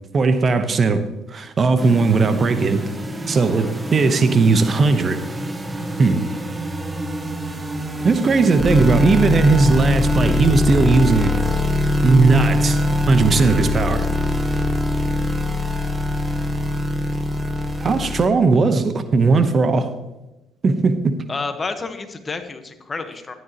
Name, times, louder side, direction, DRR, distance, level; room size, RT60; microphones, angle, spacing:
voice 1, 0.1-2.9 3.3-5.2 6.0-6.2 8.0-11.4 12.0-14.1 17.8-19.9 20.6-21.2, right 4 dB, 40° right, 1.0 m, -17 dB
sound 1, 1.8-18.3, left 1 dB, 20° right, 1.3 m, -23 dB
voice 2, 21.3-23.3, left 4 dB, 30° left, 1.3 m, -29 dB
13.0 x 10.5 x 3.0 m
supercardioid pair, 65°, 0 cm